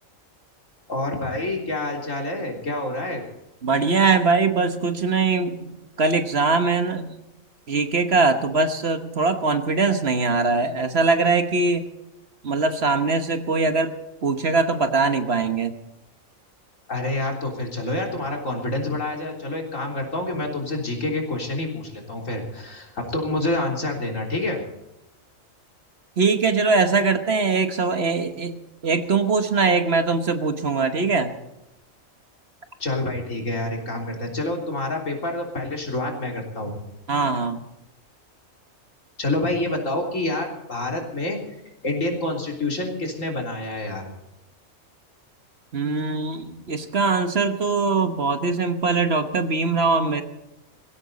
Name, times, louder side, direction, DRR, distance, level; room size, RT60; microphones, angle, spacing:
voice 1, 0.9-3.2 16.9-24.6 32.8-36.8 39.2-41.6 41.8-44.1, left 2 dB, 70° left, 0 dB, 3.9 m, -27 dB
voice 2, 3.6-7.2 7.7-11.9 12.4-15.7 26.2-31.3 37.1-37.6 45.7-50.2, right 4 dB, 50° right, 8 dB, 1.4 m, -22 dB
19.5 x 16.0 x 4.1 m, 0.91 s
omnidirectional pair, 1.4 m